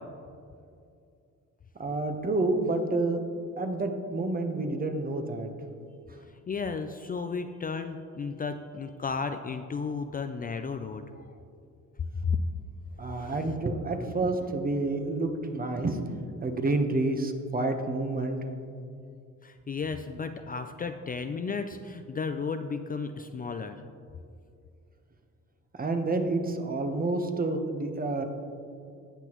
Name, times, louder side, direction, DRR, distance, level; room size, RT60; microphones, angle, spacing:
voice 1, 1.8-3.2 3.6-5.5 13.0-18.4 25.7-28.2, right 2 dB, 30° right, 6 dB, 1.0 m, -29 dB
voice 2, 6.5-11.2 12.3-12.4 13.0-13.4 19.4-23.8, left 5 dB, 30° left, 8 dB, 0.4 m, -34 dB
17.0 x 6.1 x 3.0 m, 2.4 s
cardioid pair, 90°, 30 cm